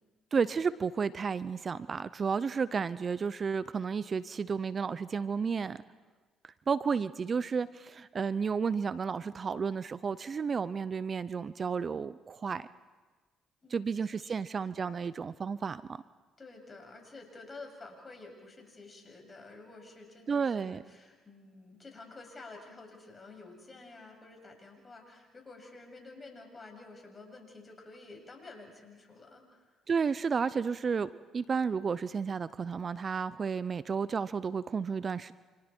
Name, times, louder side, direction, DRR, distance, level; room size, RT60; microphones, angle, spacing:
voice 1, 0.3-5.8 6.4-12.7 13.7-16.0 20.3-20.8 29.9-35.3, right 5 dB, 45° right, 16 dB, 0.7 m, -32 dB
voice 2, 13.6-14.4 16.4-29.7, left 3 dB, 30° left, 2 dB, 7.2 m, -50 dB
29.0 x 27.5 x 4.5 m, 1.3 s
supercardioid pair, 60°, 0 cm